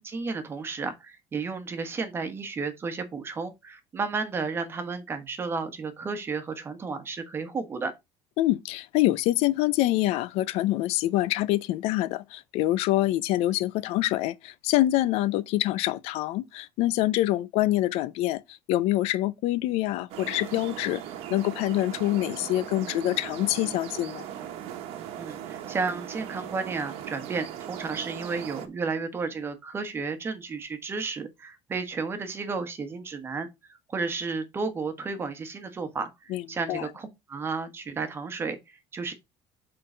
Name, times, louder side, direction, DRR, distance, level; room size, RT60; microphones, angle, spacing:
voice 1, 0.0-7.9 25.2-33.5 33.9-39.1, right 4 dB, 20° right, 1.2 m, -32 dB
voice 2, 8.4-21.0 21.3-24.3 36.3-36.9, left 15 dB, 65° left, 0.5 m, -26 dB
sound 1, 20.1-28.7, right 10 dB, 60° right, 1.2 m, -39 dB
6.6 x 3.9 x 5.0 m
cardioid pair, 170°, 11 cm